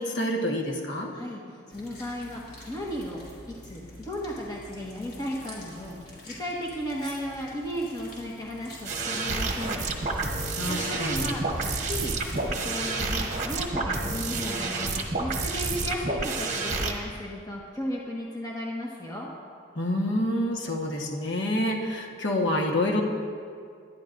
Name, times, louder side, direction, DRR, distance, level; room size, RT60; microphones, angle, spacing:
voice 1, 0.0-1.1 10.5-11.4 19.7-23.0, left 1 dB, 70° left, 0 dB, 1.4 m, -27 dB
sound 1, 1.7-13.0, left 1 dB, 55° left, 3.5 m, -46 dB
voice 2, 1.7-3.2 3.6-19.3, equal, 20° left, -3 dB, 1.4 m, -35 dB
sound 2, 8.8-16.9, right 3 dB, 40° right, 1.2 m, -29 dB
22.5 x 11.5 x 2.6 m, 2.2 s
head